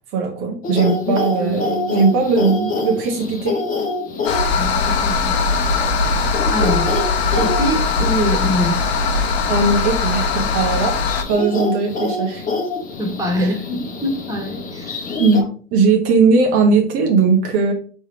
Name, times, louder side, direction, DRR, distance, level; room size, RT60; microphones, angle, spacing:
voice 1, 0.1-3.6 4.3-4.4 9.5-11.0 11.3-12.4 13.4-13.5 15.2-17.7, right 4 dB, 60° right, 2 dB, 1.0 m, -18 dB
sound 1, 0.6-15.4, left 3 dB, 25° left, 0.9 m, -27 dB
sound 2, 4.3-11.2, left 4 dB, 85° left, 0.8 m, -20 dB
voice 2, 4.6-5.4 6.5-6.9 7.3-8.9 13.0-15.1, equal, 10° right, 0 dB, 1.6 m, -24 dB
3.4 x 3.2 x 4.5 m, 0.43 s
hypercardioid pair, 90°, 32 cm